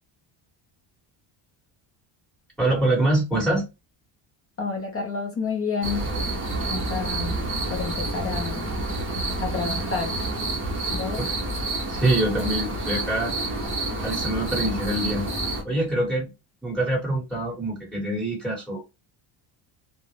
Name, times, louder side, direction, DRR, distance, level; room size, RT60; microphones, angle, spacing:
voice 1, 2.6-3.7 11.2-11.3 11.9-13.3 14.0-15.3 15.6-16.3 16.6-18.8, right 1 dB, ahead, 1.2 m, -25 dB
voice 2, 4.6-6.1 6.7-8.7 9.4-10.2 10.9-11.2, left 5 dB, 30° left, 0.4 m, -30 dB
sound 1, 5.8-15.6, right 2 dB, 25° right, 0.6 m, -28 dB
2.3 x 2.1 x 3.0 m
cardioid pair, 165°, 50 cm